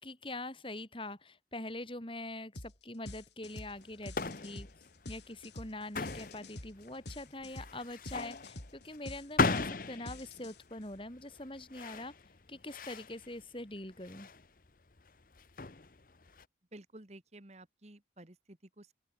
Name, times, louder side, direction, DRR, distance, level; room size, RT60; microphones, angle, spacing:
voice 1, 0.0-4.7 5.1-12.1 12.5-14.3, left 1 dB, 30° left, 3.5 m, -44 dB
sound 1, 2.6-2.8 3.1-10.8, left 1 dB, 75° left, 5.0 m, -47 dB
sound 2, 3.4-16.4, left 3 dB, 50° left, 1.0 m, -38 dB
voice 2, 16.7-18.9, right 1 dB, 35° right, 1.7 m, -53 dB
open air
head